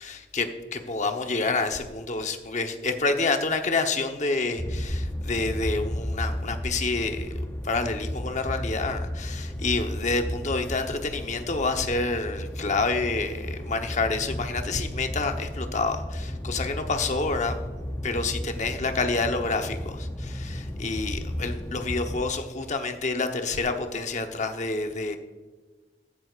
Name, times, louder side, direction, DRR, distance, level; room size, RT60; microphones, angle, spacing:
voice 1, 0.0-7.3 7.6-17.6 18.0-25.2, left 3 dB, 40° left, 6 dB, 0.9 m, -28 dB
sound 1, 4.6-22.2, left 1 dB, 15° left, 0.6 m, -33 dB
15.0 x 10.5 x 2.4 m, 1.3 s
head